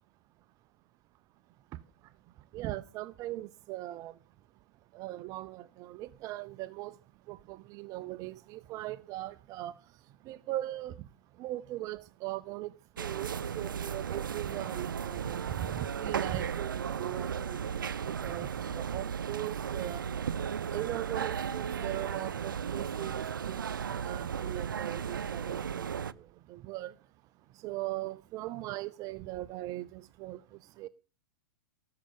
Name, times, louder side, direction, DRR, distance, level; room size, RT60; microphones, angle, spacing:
voice 1, 2.5-4.1 4.9-6.9 7.3-9.7 10.3-10.9 11.4-12.7 13.0-17.6 18.2-20.0 20.7-23.6 24.0-26.0 26.5-26.9 27.6-30.4 30.8-30.9, right 16 dB, 30° right, 0.6 m, -39 dB
sound 1, 13.0-26.1, right 7 dB, 70° right, 0.7 m, -35 dB
19.0 x 6.7 x 7.1 m
figure-of-eight pair, 105°, 11 cm